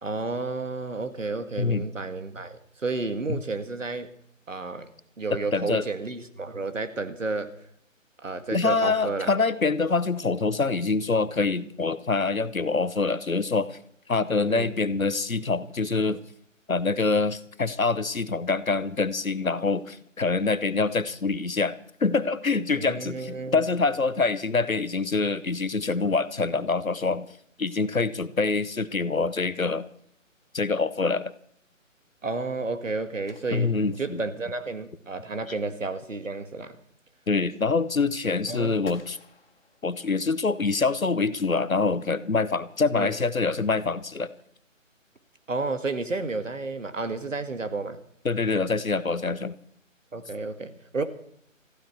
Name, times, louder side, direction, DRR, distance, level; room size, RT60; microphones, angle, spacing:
voice 1, 0.0-4.1 4.5-4.9 5.2-7.6 8.2-9.3 14.5-14.7 22.8-23.7 32.2-36.8 38.5-38.8 42.9-43.2 45.5-48.0 50.1-51.0, right 3 dB, 70° right, 10 dB, 1.9 m, -31 dB
voice 2, 5.3-5.8 8.5-13.8 14.1-16.2 16.7-21.7 22.0-27.3 27.6-29.8 30.5-31.3 33.5-34.2 37.3-39.2 39.8-44.3 48.2-49.5, left 4 dB, 90° left, 16 dB, 1.1 m, -25 dB
sound 1, 33.3-34.7 38.8-40.4, left 4 dB, 45° left, 2.3 m, -53 dB
18.5 x 14.5 x 4.6 m, 0.64 s
figure-of-eight pair, 150°, 40 cm